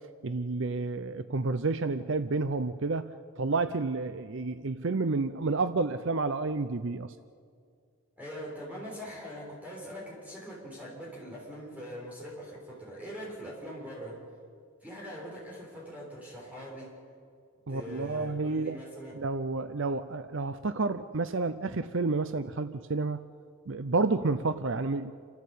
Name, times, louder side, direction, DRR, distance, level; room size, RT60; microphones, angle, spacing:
voice 1, 0.2-7.1 17.7-18.8 19.1-23.2 23.7-25.1, right 3 dB, 55° right, 12 dB, 0.6 m, -30 dB
voice 2, 8.2-14.2 14.8-16.9 17.7-19.2 19.7-19.8, equal, 5° right, -4 dB, 6.8 m, -42 dB
28.5 x 14.0 x 8.4 m, 2.2 s
head